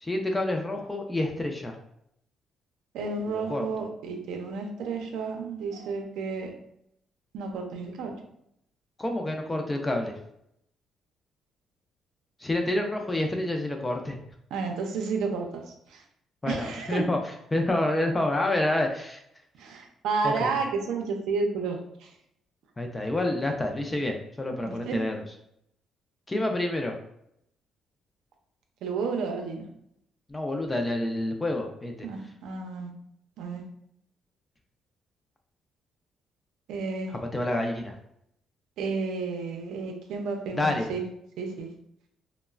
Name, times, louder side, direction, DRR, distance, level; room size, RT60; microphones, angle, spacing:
voice 1, 0.0-1.8 3.3-3.7 9.0-10.2 12.4-14.2 16.4-17.2 17.5-19.2 20.2-20.5 22.8-25.2 26.3-27.0 30.3-31.9 37.3-38.0 40.6-40.9, left 1 dB, 15° left, 3 dB, 0.3 m, -28 dB
voice 2, 2.9-6.5 7.3-8.2 14.5-15.5 15.9-16.0 16.5-17.1 19.6-22.1 24.6-25.0 28.8-29.6 32.0-32.9 33.4-33.6 36.7-37.1 38.8-41.0 41.4-41.7, right 4 dB, 85° right, 3 dB, 0.5 m, -31 dB
3.0 x 2.0 x 2.3 m, 0.75 s
cardioid pair, 130°, 0 cm